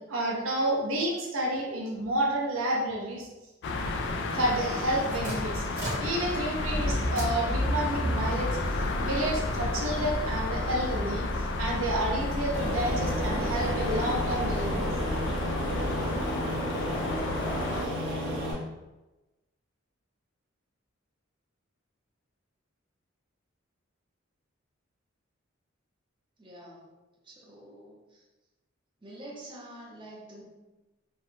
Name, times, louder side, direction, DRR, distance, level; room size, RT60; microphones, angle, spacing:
voice 1, 0.1-3.3 4.3-5.6 6.0-8.6 9.0-11.3 11.6-14.9, right 1 dB, 80° right, -2 dB, 0.6 m, -30 dB
sound 1, 3.6-17.9, left 3 dB, 55° left, 0.3 m, -33 dB
sound 2, 4.8-16.2, equal, 40° right, 1.4 m, -33 dB
Aircraft, 12.5-18.5, equal, 60° right, 1.3 m, -32 dB
voice 2, 26.4-26.9 27.3-27.9 29.0-30.4, right 1 dB, 25° right, -6 dB, 0.7 m, -46 dB
3.3 x 2.1 x 2.7 m, 1.1 s
head